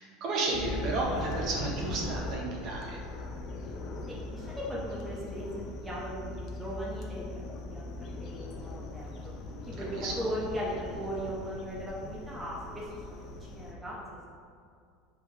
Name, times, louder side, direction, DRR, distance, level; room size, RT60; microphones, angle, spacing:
voice 1, 0.0-3.0 9.8-10.1, right 2 dB, 45° right, -2 dB, 0.8 m, -33 dB
sound 1, 0.5-13.7, left 2 dB, 35° left, 0.5 m, -40 dB
voice 2, 4.1-9.1 9.7-14.0, equal, 10° right, -6 dB, 0.7 m, -38 dB
3.5 x 3.3 x 4.6 m, 2.2 s
supercardioid pair, 155°, 0 cm